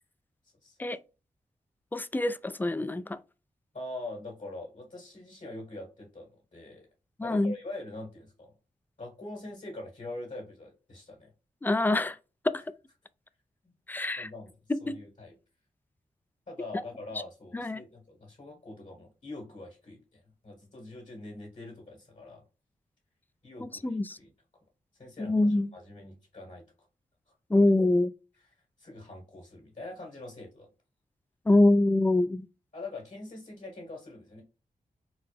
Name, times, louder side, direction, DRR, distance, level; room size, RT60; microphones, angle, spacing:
voice 1, 1.9-3.2 7.2-7.5 11.6-12.2 13.9-14.3 14.7-15.0 17.5-17.8 23.6-24.2 25.2-25.7 27.5-28.1 31.5-32.5, left 2 dB, 15° left, 0.3 m, -25 dB
voice 2, 3.7-6.9 7.2-8.5 9.0-11.3 13.6-13.7 14.1-15.3 16.5-22.4 23.4-24.3 24.9-26.6 27.5-27.7 28.8-30.7 32.7-34.4, left 2 dB, 60° left, 1.7 m, -43 dB
3.9 x 2.1 x 3.4 m
cardioid pair, 55°, 14 cm